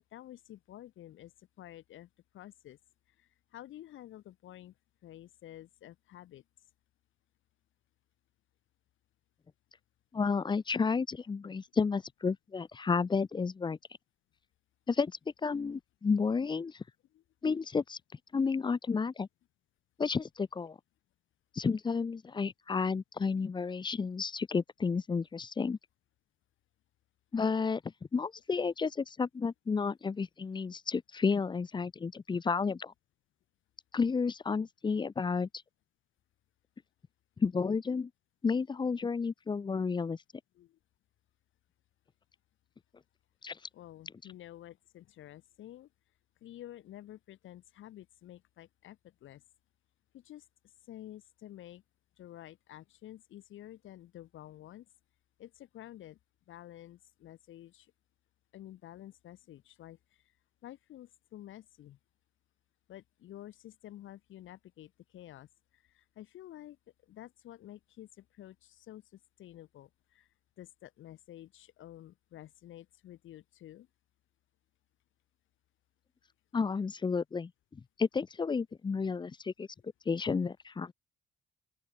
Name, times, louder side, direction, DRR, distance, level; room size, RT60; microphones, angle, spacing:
voice 1, 0.1-2.1 2.3-2.8 3.2-4.7 5.0-6.4 17.1-17.2 40.5-40.8 43.7-45.9 46.4-49.4 50.1-50.4 50.9-51.8 52.2-54.9 55.4-56.2 56.5-57.9 58.5-60.2 60.6-62.0 62.9-65.5 65.7-66.8 67.0-70.3 70.6-73.9, left 13 dB, 80° left, 4.8 m, -50 dB
voice 2, 10.1-13.8 14.9-16.8 17.4-18.0 18.3-19.3 20.0-20.8 21.5-25.8 27.3-27.8 28.1-32.9 33.9-35.5 37.4-38.1 38.4-40.2 43.4-43.6 76.5-80.9, left 5 dB, 25° left, 0.5 m, -31 dB
open air
cardioid pair, 90°, 20 cm